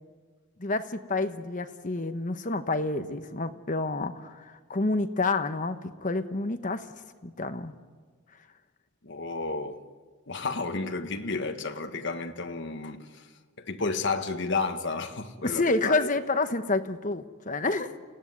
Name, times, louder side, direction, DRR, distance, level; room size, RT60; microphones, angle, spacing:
voice 1, 0.6-6.9 7.2-7.7 15.4-17.9, left 3 dB, 35° left, 1.1 m, -29 dB
voice 2, 9.0-9.8 10.3-16.1, left 3 dB, 55° left, 1.4 m, -32 dB
29.5 x 16.0 x 9.5 m
head